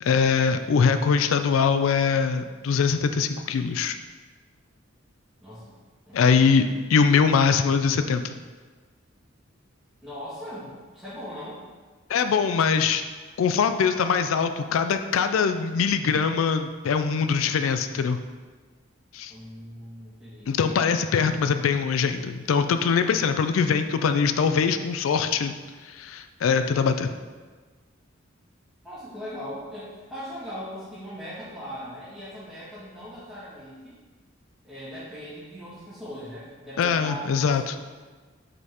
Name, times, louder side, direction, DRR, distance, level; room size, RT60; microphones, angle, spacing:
voice 1, 0.0-4.0 6.1-8.4 12.1-13.0 13.4-18.2 19.1-19.3 20.5-25.5 25.8-27.1 36.8-37.8, left 6 dB, 90° left, 9 dB, 0.4 m, -22 dB
voice 2, 5.4-5.8 6.1-6.5 10.0-11.6 19.3-20.6 28.8-34.0 34.6-37.8, equal, 5° right, -15 dB, 1.9 m, -39 dB
5.2 x 4.2 x 4.8 m, 1.4 s
head